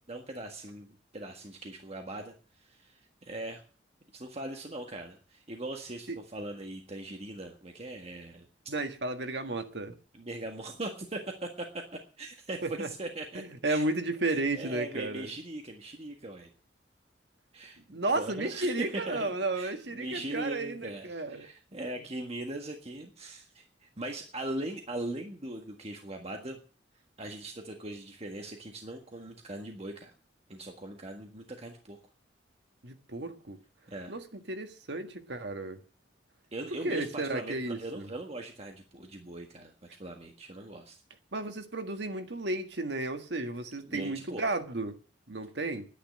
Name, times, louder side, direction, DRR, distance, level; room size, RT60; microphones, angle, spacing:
voice 1, 0.1-3.6 4.1-8.5 10.1-11.7 12.2-13.9 14.3-16.5 17.5-26.6 27.2-30.1 30.5-32.0 33.9-34.1 36.5-41.0 43.8-44.4, right 1 dB, 35° right, 1.6 m, -40 dB
voice 2, 8.7-9.9 12.6-12.9 13.3-15.3 17.9-21.5 32.8-33.6 34.1-35.8 36.8-38.1 41.3-45.0 45.3-45.9, right 2 dB, 70° right, 1.7 m, -33 dB
11.0 x 10.0 x 7.5 m
head